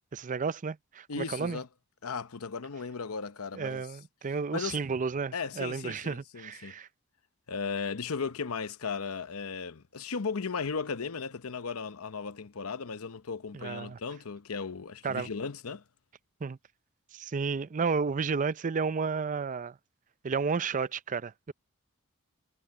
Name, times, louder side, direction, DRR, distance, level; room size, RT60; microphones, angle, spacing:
voice 1, 0.1-1.6 3.5-6.9 13.5-14.0 15.0-15.3 16.4-16.6 17.1-19.7 20.2-21.5, right 5 dB, 35° right, 0.5 m, -32 dB
voice 2, 1.1-1.7 2.0-3.8 4.5-4.8 5.3-6.7 7.5-15.8, left 5 dB, 75° left, 0.8 m, -36 dB
head